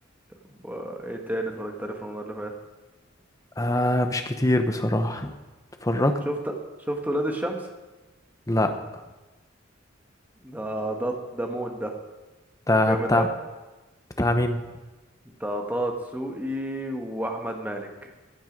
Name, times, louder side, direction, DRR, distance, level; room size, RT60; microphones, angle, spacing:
voice 1, 0.6-2.5 6.2-6.5 6.8-7.7 10.4-12.0 12.8-13.3 15.2-18.1, right 1 dB, 10° right, 2 dB, 1.3 m, -30 dB
voice 2, 3.6-5.3 5.8-6.2 8.5-8.7 12.7-13.3 14.2-14.6, left 1 dB, 15° left, 7 dB, 0.9 m, -23 dB
15.0 x 9.3 x 5.3 m, 1.2 s
head